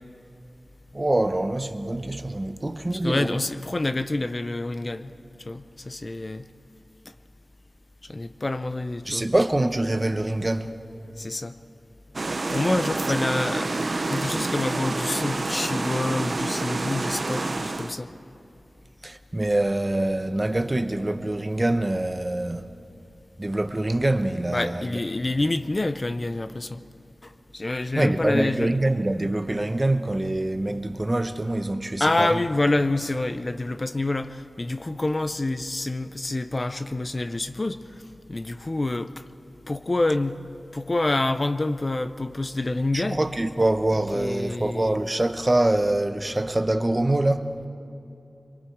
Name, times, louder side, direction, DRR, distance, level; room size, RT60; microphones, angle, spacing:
voice 1, 0.9-3.4 9.0-10.7 19.0-22.6 23.4-25.0 28.0-32.4 42.9-47.5, right 1 dB, 30° right, 1.0 m, -25 dB
voice 2, 3.0-5.1 5.4-6.5 8.1-9.3 11.2-11.6 12.5-18.1 24.5-26.8 27.2-28.7 32.0-37.8 38.3-39.2 39.7-40.4 40.7-43.2 44.1-45.0, left 2 dB, 40° left, 0.7 m, -27 dB
sound 1, 12.1-17.9, right 3 dB, 60° right, 0.9 m, -28 dB
26.0 x 23.0 x 4.7 m
wide cardioid pair, 65°, 0 cm